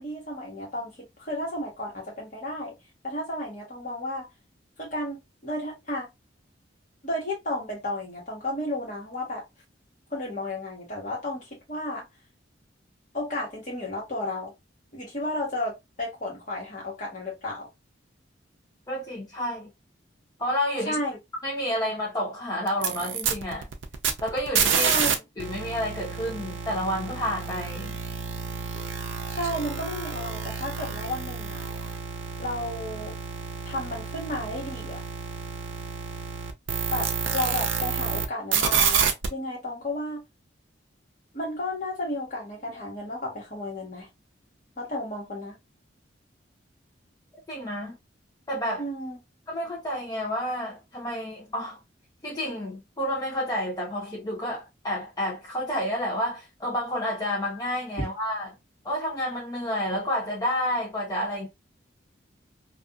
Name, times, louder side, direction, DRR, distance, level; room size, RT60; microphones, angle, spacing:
voice 1, 0.0-2.8 3.0-4.3 4.8-6.1 7.0-9.4 10.1-12.0 13.1-14.5 14.9-17.7 20.8-21.2 24.8-25.2 29.3-31.6 32.4-33.2 33.7-35.0 36.9-40.2 41.3-44.1 44.8-45.6 48.8-49.2 58.0-58.1, left 1 dB, 40° left, 1.3 m, -33 dB
voice 2, 18.9-19.7 20.4-21.0 21.4-23.7 24.2-24.9 25.4-27.9 47.5-48.0 48.5-48.8 49.5-51.8 52.2-58.5 58.8-61.5, equal, 20° left, 0.6 m, -30 dB
sound 1, 22.7-25.1 25.4-38.3 38.5-39.3, right 6 dB, 75° right, 0.5 m, -29 dB
2.6 x 2.4 x 2.2 m
head